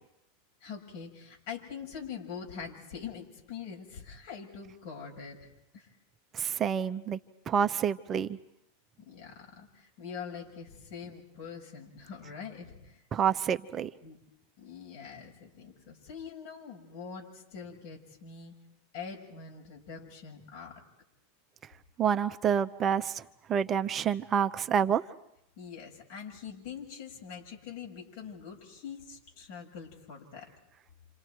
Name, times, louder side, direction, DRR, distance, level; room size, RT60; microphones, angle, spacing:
voice 1, 0.6-5.9 9.1-13.0 14.0-14.2 14.6-18.5 18.9-20.8 25.6-30.5, left 6 dB, 65° left, 0 dB, 7.3 m, -44 dB
voice 2, 6.3-7.2 7.5-8.4 13.1-13.9 22.0-23.2 23.5-25.0, right 8 dB, 30° right, 9 dB, 0.9 m, -28 dB
29.5 x 27.5 x 4.8 m, 0.79 s
hypercardioid pair, 105°, 0 cm